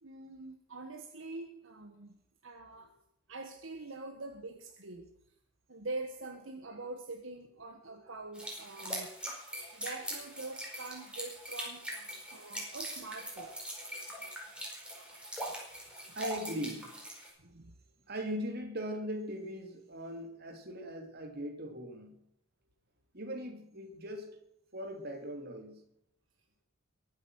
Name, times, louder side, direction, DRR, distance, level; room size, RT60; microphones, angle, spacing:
voice 1, 0.0-2.9 3.3-5.1 5.7-9.1 9.7-11.8 12.3-13.6 17.4-17.7, right 2 dB, 70° right, 1.4 m, -44 dB
sound 1, 8.3-17.3, right 1 dB, 5° right, 4.9 m, -42 dB
voice 2, 10.0-10.3 12.0-12.1 16.1-16.9 18.1-22.2 23.1-24.3 24.7-25.8, equal, 50° right, 3.0 m, -40 dB
22.5 x 8.3 x 6.4 m
head